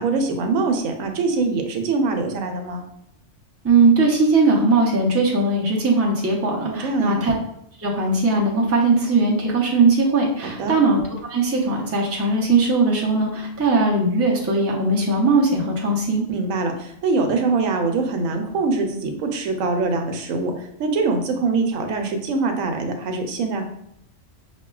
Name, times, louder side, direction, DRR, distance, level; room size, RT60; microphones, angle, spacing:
voice 1, 0.0-2.8 6.6-7.2 10.4-10.7 16.3-23.7, right 3 dB, 90° right, 4 dB, 1.0 m, -23 dB
voice 2, 3.6-7.3 7.8-16.2, right 3 dB, 20° right, -3 dB, 0.4 m, -19 dB
5.8 x 2.1 x 2.3 m, 0.75 s
omnidirectional pair, 1.3 m